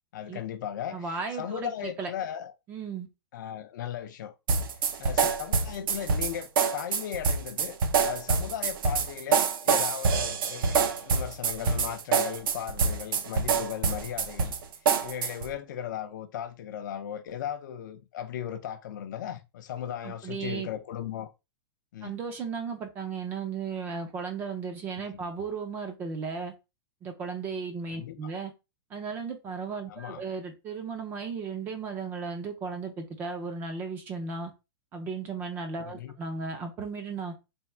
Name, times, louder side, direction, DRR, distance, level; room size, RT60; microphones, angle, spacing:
voice 1, 0.1-2.5 3.3-4.3 5.0-10.8 11.0-14.6 15.0-21.3 21.9-22.2 27.9-28.3 29.9-30.2 35.9-36.1, left 10 dB, 50° left, 0.5 m, -37 dB
voice 2, 0.9-2.1 2.7-3.1 20.0-20.7 22.0-26.5 27.0-28.5 28.9-34.5 34.9-37.3, right 5 dB, 15° right, 0.5 m, -35 dB
sound 1, 4.5-15.5, right 5 dB, 60° right, 0.7 m, -26 dB
3.4 x 2.3 x 4.2 m
supercardioid pair, 175°, 13 cm